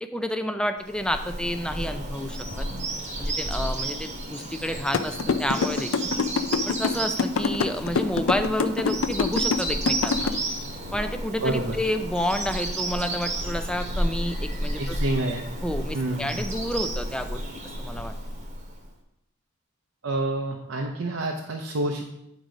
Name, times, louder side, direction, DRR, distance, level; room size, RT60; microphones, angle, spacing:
voice 1, 0.0-2.7 3.2-6.1 6.7-10.3 10.9-15.0 15.6-17.4 17.8-18.1, equal, 5° left, 7 dB, 0.4 m, -30 dB
Bird vocalization bird call bird song, 0.9-18.9, right 1 dB, 35° right, 1.1 m, -32 dB
sound 1, 4.9-10.3, left 5 dB, 65° left, 0.5 m, -24 dB
voice 2, 11.4-11.8 14.8-15.4 15.9-16.5 20.0-22.0, right 2 dB, 70° right, 1 dB, 0.7 m, -28 dB
9.4 x 4.0 x 5.0 m, 0.84 s
head